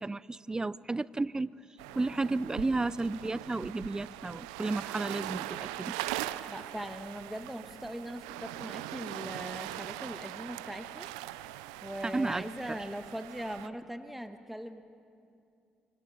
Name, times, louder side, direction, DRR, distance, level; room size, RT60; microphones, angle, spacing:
voice 1, 0.0-1.6 1.9-6.0 12.0-12.8, right 3 dB, 20° right, 20 dB, 0.5 m, -33 dB
sound 1, 1.8-13.7, right 15 dB, 90° right, 0.5 m, -41 dB
voice 2, 6.5-11.1 11.8-14.8, equal, 5° right, 8 dB, 1.4 m, -40 dB
25.0 x 25.0 x 5.7 m, 2.5 s
hypercardioid pair, 50°, 3 cm